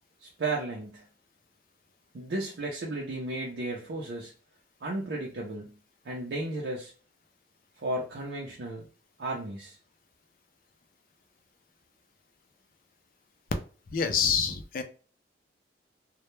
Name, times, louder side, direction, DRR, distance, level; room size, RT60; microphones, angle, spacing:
voice 1, 0.2-1.1 2.1-4.3 4.8-5.8 6.0-6.9 7.8-8.8 9.2-9.8, right 2 dB, 75° right, -2 dB, 0.5 m, -34 dB
voice 2, 13.9-14.8, left 6 dB, 50° left, 6 dB, 0.4 m, -26 dB
2.1 x 2.1 x 3.0 m, 0.38 s
head